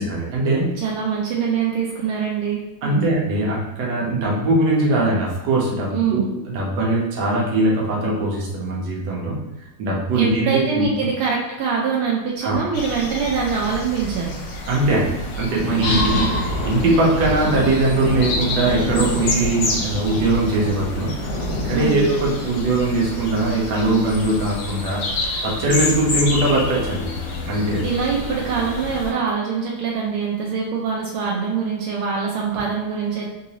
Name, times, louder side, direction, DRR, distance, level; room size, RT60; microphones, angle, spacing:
voice 1, 0.0-0.7 2.8-9.4 9.8-10.8 12.4-12.7 14.7-21.1 21.6-25.0 25.4-27.1 27.5-27.8, right 2 dB, 60° right, -3 dB, 1.3 m, -21 dB
voice 2, 0.8-3.1 5.9-6.3 10.2-14.3 15.9-16.3 21.7-22.0 27.8-33.3, right 6 dB, 85° right, -3 dB, 1.4 m, -24 dB
sound 1, 12.7-29.1, left 2 dB, 75° left, 1.4 m, -28 dB
Thunder, 15.7-24.7 25.0-25.2 25.6-25.9 26.5-27.0, left 2 dB, 45° left, 0.5 m, -29 dB
3.8 x 2.5 x 2.8 m, 0.99 s
omnidirectional pair, 2.2 m